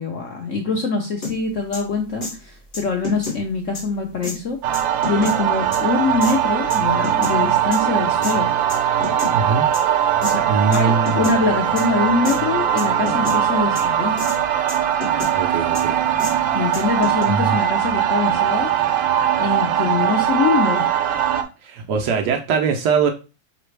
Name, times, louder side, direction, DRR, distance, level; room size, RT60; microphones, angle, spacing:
voice 1, 0.0-4.6 5.1-8.5 10.2-10.4 10.7-14.1 16.5-18.7 19.4-20.8, left 4 dB, 65° left, 1 dB, 0.8 m, -23 dB
sound 1, 1.2-1.3 1.7-1.8 2.2-2.3 2.7-3.4 3.8-3.9 4.2-4.4 4.7-5.3 5.7-5.8 6.2-6.3 6.7-7.4 7.7-7.8 8.2-8.3 8.7-9.3 9.7-9.8 10.2-10.3 10.7-10.8 11.1-11.4 11.8-11.9 12.3-12.4 12.8-13.4 13.8-13.9 14.2-14.4 14.7-15.3 15.7-15.8 16.2-16.3 16.7-17.2, left 3 dB, 35° left, 2.4 m, -29 dB
sound 2, 4.6-21.4, right 10 dB, 85° right, 1.3 m, -20 dB
voice 2, 9.3-9.7 10.5-11.2 15.4-16.0 17.3-17.6 21.6-23.1, right 5 dB, 70° right, 3 dB, 1.0 m, -21 dB
5.1 x 3.3 x 3.2 m, 0.31 s
omnidirectional pair, 2.1 m